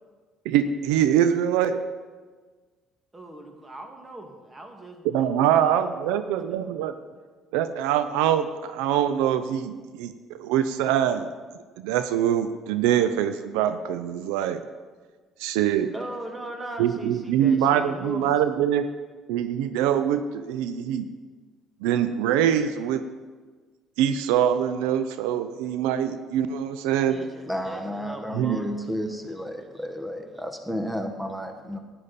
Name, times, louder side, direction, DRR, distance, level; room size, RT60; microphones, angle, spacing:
voice 1, 0.5-1.9 5.0-6.9 7.5-11.3 11.8-14.6 15.4-15.9 16.8-18.9 19.3-21.1 21.8-23.1 24.0-27.3 28.3-28.6, right 9 dB, 85° right, 11 dB, 0.5 m, -24 dB
voice 2, 3.1-6.7 15.9-18.3 27.0-29.0 29.2-30.4 30.8-30.9, right 1 dB, 25° right, 4 dB, 2.0 m, -40 dB
voice 3, 27.4-31.8, equal, 5° right, 6 dB, 1.1 m, -32 dB
12.5 x 10.0 x 4.2 m, 1.4 s
supercardioid pair, 75°, 0 cm